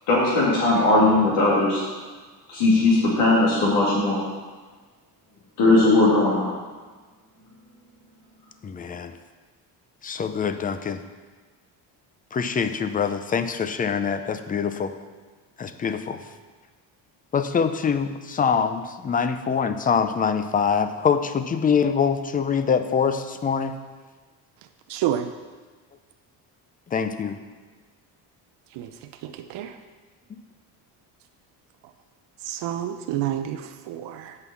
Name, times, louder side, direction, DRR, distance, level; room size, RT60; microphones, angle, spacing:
voice 1, 0.1-1.8 2.5-4.2 5.6-6.5, left 2 dB, 90° left, -7 dB, 2.4 m, -19 dB
voice 2, 8.6-9.2 10.0-11.0 12.3-14.9 15.6-16.2 17.3-23.8 26.9-27.4, left 6 dB, 20° left, 10 dB, 0.5 m, -24 dB
voice 3, 24.9-25.3 28.7-29.8 32.4-34.4, right 11 dB, 75° right, 7 dB, 0.7 m, -29 dB
8.1 x 5.5 x 7.0 m, 1.4 s
cardioid pair, 130°, 42 cm